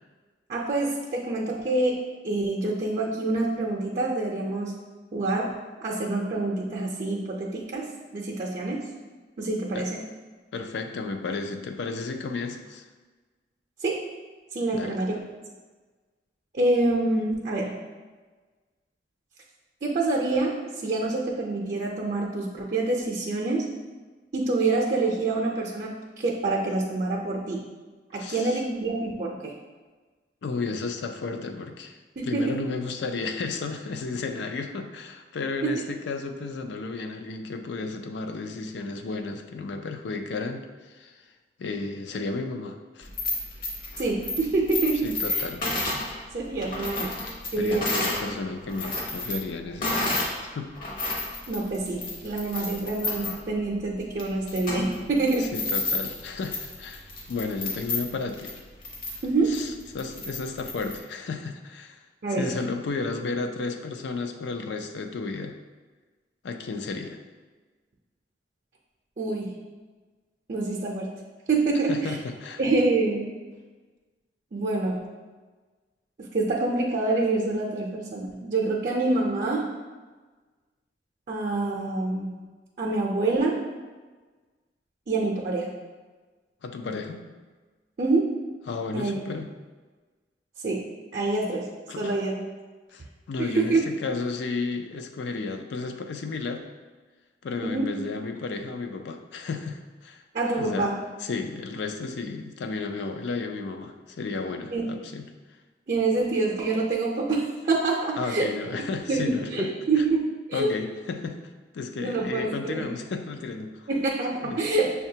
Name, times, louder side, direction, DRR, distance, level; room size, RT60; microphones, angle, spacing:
voice 1, 0.5-4.8 5.1-5.5 5.8-7.8 8.1-8.8 9.4-10.1 13.8-14.0 14.5-15.2 16.5-17.7 19.8-23.6 24.3-27.6 28.1-29.5 32.2-32.6 35.6-35.8 44.0-45.4 46.3-47.2 47.5-48.0 51.5-55.5 59.2-59.6 62.2-62.5 69.2-69.6 70.5-71.2 71.5-72.2 72.6-73.3 74.5-75.0 76.2-79.6 81.3-82.4 82.8-83.6 85.1-85.7 88.0-88.4 88.9-89.2 90.6-90.8 91.1-91.7 92.0-92.3 93.4-93.8 97.6-97.9 100.3-101.0 104.7-104.8 105.9-108.5 109.1-110.2 110.5-110.7 112.0-112.9 113.9-114.9, right 3 dB, 45° right, -2 dB, 0.5 m, -26 dB
voice 2, 10.5-12.8 14.7-15.0 28.2-28.6 30.4-32.0 32.2-41.2 41.6-43.1 45.0-45.6 47.6-50.8 55.5-58.5 59.5-62.0 62.4-65.6 66.4-67.2 71.9-72.6 86.6-87.2 88.7-89.5 91.9-92.2 92.9-96.7 97.4-100.2 100.6-100.9 101.2-105.3 108.2-109.7 110.0-110.1 110.5-111.4 111.7-113.9 114.4-114.6, left 4 dB, 75° left, 5 dB, 0.4 m, -33 dB
sound 1, 43.0-48.3 48.6-50.4 50.7-61.0, left 2 dB, 55° left, 0.8 m, -32 dB
6.4 x 2.3 x 2.7 m, 1.3 s
head